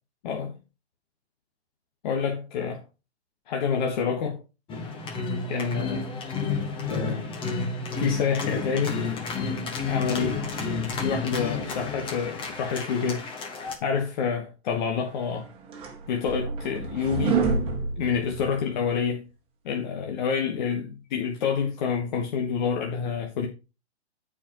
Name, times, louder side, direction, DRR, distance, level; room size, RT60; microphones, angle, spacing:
voice 1, 0.2-0.6 2.0-2.8 3.5-4.4 5.5-6.1 6.9-7.2 8.0-9.0 9.9-10.4 11.0-13.3 13.8-15.5 16.1-17.4 18.0-19.2 19.6-23.5, left 6 dB, 45° left, 1.4 m, -28 dB
sound 1, 4.7-13.8, left 4 dB, 15° left, 1.4 m, -31 dB
sound 2, 15.3-18.9, right 5 dB, 15° right, 1.8 m, -28 dB
14.0 x 5.0 x 3.0 m
hypercardioid pair, 145°, 33 cm